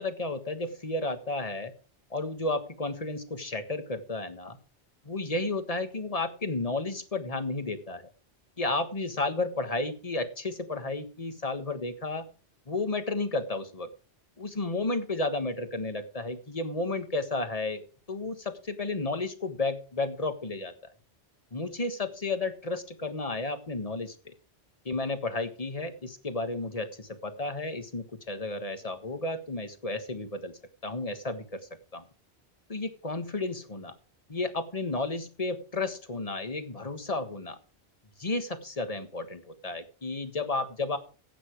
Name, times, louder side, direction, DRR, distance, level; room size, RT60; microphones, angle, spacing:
voice 1, 0.0-1.7 2.1-4.6 5.0-8.1 8.6-12.2 12.7-13.9 14.4-20.7 21.5-24.3 24.8-32.0 32.7-33.9 34.3-37.6 38.2-41.0, left 2 dB, 35° left, 9 dB, 1.6 m, -32 dB
15.0 x 8.7 x 4.7 m, 0.37 s
omnidirectional pair, 1.2 m